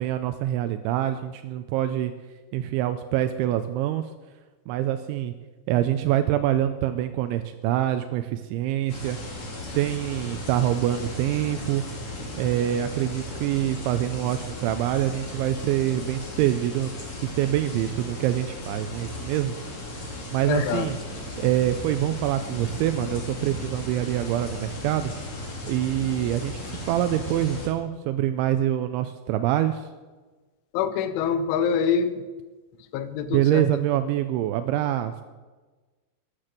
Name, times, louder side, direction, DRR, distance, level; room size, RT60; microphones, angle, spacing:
voice 1, 0.0-2.1 2.5-4.1 4.7-5.3 5.7-9.2 9.6-11.8 12.3-16.9 17.2-19.6 20.3-21.0 21.4-25.1 25.7-29.9 33.3-35.2, right 12 dB, 85° right, 9 dB, 2.9 m, -25 dB
sound 1, 8.9-27.7, left 1 dB, 40° left, 2.4 m, -36 dB
voice 2, 20.5-20.9 30.7-32.2 32.9-33.7, left 7 dB, 85° left, 12 dB, 3.2 m, -25 dB
13.0 x 9.9 x 7.5 m, 1.3 s
omnidirectional pair, 5.5 m